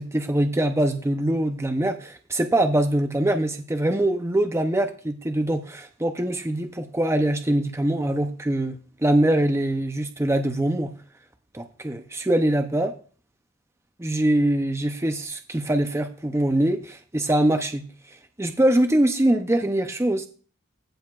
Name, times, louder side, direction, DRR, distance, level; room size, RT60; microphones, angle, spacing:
voice 1, 0.0-10.9 11.5-12.9 14.0-17.8 18.4-20.3, right 1 dB, 15° right, 6 dB, 0.6 m, -23 dB
15.5 x 6.7 x 2.4 m, 0.39 s
head